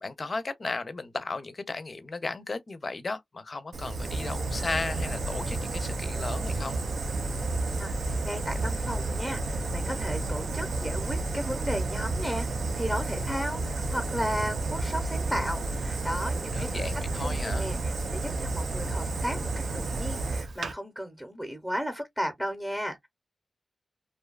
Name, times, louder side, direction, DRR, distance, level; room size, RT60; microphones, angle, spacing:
voice 1, 0.0-6.8 16.5-17.7, left 3 dB, 45° left, 0.5 m, -35 dB
Fire, 3.7-20.7, right 2 dB, 80° right, 0.4 m, -31 dB
voice 2, 7.8-16.9 17.2-23.1, equal, 10° right, 0.7 m, -35 dB
2.6 x 2.3 x 2.2 m
wide cardioid pair, 95°, 0 cm